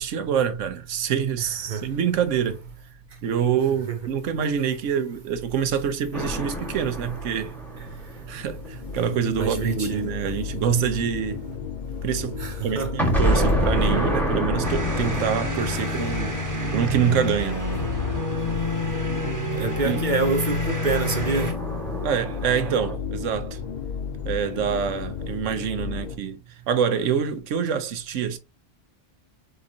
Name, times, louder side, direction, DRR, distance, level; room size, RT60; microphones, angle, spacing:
voice 1, 0.0-2.6 3.2-7.5 8.3-11.4 12.0-16.4 16.7-17.6 19.8-20.0 22.0-23.6 24.2-28.4, right 8 dB, 85° right, 1.0 m, -26 dB
sound 1, 6.1-8.9 13.0-19.2 20.5-22.9, equal, ahead, 1.3 m, -28 dB
sound 2, 8.1-26.2, left 7 dB, 65° left, 0.4 m, -34 dB
voice 2, 9.4-10.1 12.4-12.9 15.7-15.8 19.6-21.6, right 4 dB, 45° right, 0.7 m, -26 dB
sound 3, 14.6-21.5, left 1 dB, 15° right, 1.1 m, -28 dB
4.4 x 3.8 x 2.7 m
omnidirectional pair, 1.2 m